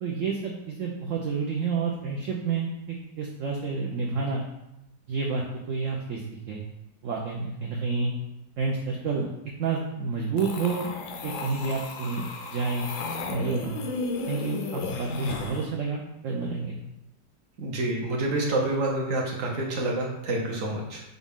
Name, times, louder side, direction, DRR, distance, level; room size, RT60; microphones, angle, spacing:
voice 1, 0.0-4.4 5.1-6.6 7.0-8.1 8.6-9.3 9.6-10.9 11.2-12.2 12.5-12.9 13.3-13.8 14.3-16.8, right 4 dB, 85° right, -1 dB, 0.7 m, -29 dB
sound 1, 10.4-15.7, left 4 dB, 75° left, 0.7 m, -34 dB
voice 2, 17.6-21.0, right 2 dB, 55° right, -1 dB, 1.1 m, -28 dB
5.5 x 2.4 x 3.5 m, 0.89 s
omnidirectional pair, 1.9 m